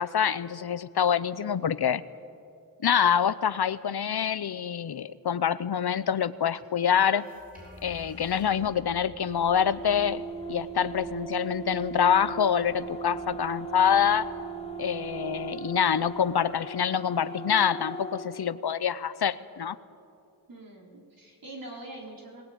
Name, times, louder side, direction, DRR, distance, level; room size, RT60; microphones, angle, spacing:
voice 1, 0.0-2.0 2.8-7.3 7.8-14.3 14.8-19.8, left 8 dB, 70° left, 16 dB, 0.8 m, -26 dB
sound 1, 7.0-16.4, left 1 dB, 20° right, 7.2 m, -49 dB
sound 2, 9.3-18.3, right 3 dB, 15° left, 2.2 m, -38 dB
voice 2, 20.5-22.4, right 1 dB, 60° right, -1 dB, 4.0 m, -44 dB
21.0 x 19.5 x 9.4 m, 2.5 s
wide cardioid pair, 100°, 40 cm